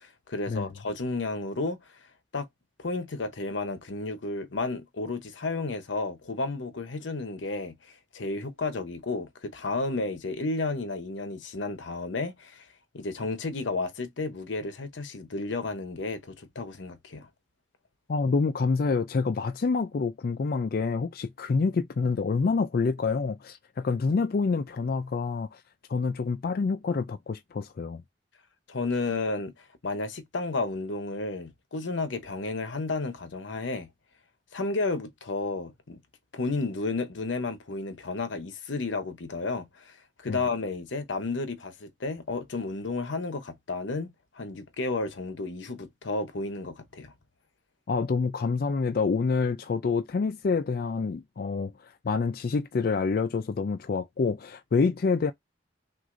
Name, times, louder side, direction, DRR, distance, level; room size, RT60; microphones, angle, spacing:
voice 1, 0.0-1.8 2.3-2.5 2.8-12.7 12.9-17.3 28.7-33.9 34.5-36.0 36.3-40.0 40.2-47.1, left 3 dB, 90° left, 0.9 m, -32 dB
voice 2, 18.1-25.6 25.9-28.0 40.3-40.4 47.9-55.3, left 4 dB, 55° left, 0.4 m, -27 dB
6.1 x 2.6 x 2.5 m
head